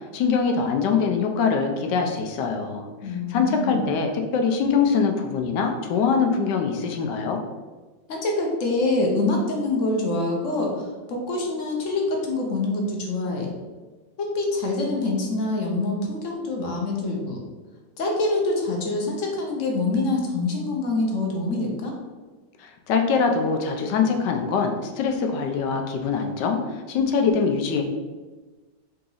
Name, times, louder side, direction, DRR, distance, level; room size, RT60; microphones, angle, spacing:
voice 1, 0.1-2.9 3.3-7.4 22.6-27.8, left 5 dB, 80° left, 4 dB, 1.2 m, -23 dB
voice 2, 3.0-3.9 8.1-13.5 14.2-17.4 18.0-21.9, left 2 dB, 60° left, 0 dB, 0.9 m, -25 dB
3.9 x 2.9 x 3.8 m, 1.3 s
omnidirectional pair, 1.9 m